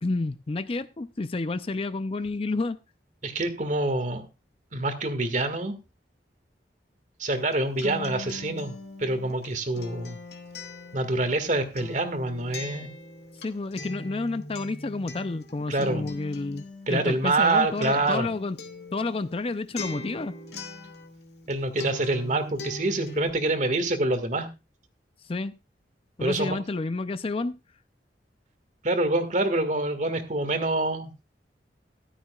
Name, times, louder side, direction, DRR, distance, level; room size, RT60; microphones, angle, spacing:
voice 1, 0.0-2.8 13.4-16.6 16.9-18.6 18.9-20.4 25.2-25.6 26.2-27.6, left 3 dB, 30° left, 0.5 m, -30 dB
voice 2, 3.2-4.3 4.7-5.8 7.2-8.7 9.0-10.2 10.9-12.9 15.7-16.1 16.9-18.3 21.5-24.5 26.2-26.6 28.8-31.1, right 2 dB, 45° right, 1.8 m, -26 dB
Acoustic guitar, 7.3-21.5 21.8-23.3, left 2 dB, 65° left, 2.1 m, -41 dB
14.0 x 12.5 x 2.4 m
head